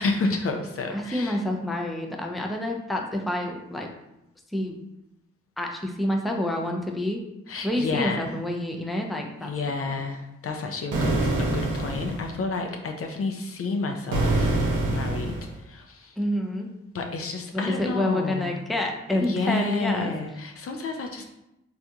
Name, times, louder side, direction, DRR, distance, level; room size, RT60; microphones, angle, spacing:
voice 1, 0.0-1.4 7.5-8.3 8.9-9.0 9.4-14.6 14.9-16.2 16.9-18.6 19.1-21.2, left 3 dB, 45° left, 4 dB, 0.5 m, -30 dB
voice 2, 0.9-3.9 4.5-4.8 5.6-7.2 7.6-9.5 9.9-10.0 16.2-16.7 17.5-20.1, left 1 dB, ahead, 1 dB, 0.5 m, -28 dB
sound 1, 10.9-12.3 14.1-15.5, right 2 dB, 70° right, 0.8 m, -25 dB
3.3 x 2.4 x 2.7 m, 0.88 s
supercardioid pair, 40°, 31 cm